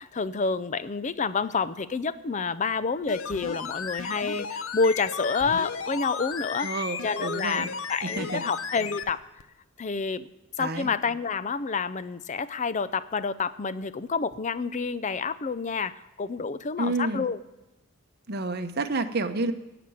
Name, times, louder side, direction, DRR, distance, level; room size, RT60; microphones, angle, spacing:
voice 1, 0.0-6.7 7.0-9.2 9.8-10.3 10.6-17.4, left 4 dB, 35° left, 15 dB, 0.5 m, -28 dB
sound 1, 3.0-9.1 9.4-9.5, left 5 dB, 65° left, 0.7 m, -35 dB
voice 2, 6.6-7.7 8.0-8.4 10.6-10.9 16.8-17.2 18.3-19.5, right 2 dB, 50° right, 7 dB, 0.9 m, -29 dB
15.0 x 6.0 x 9.3 m, 0.97 s
head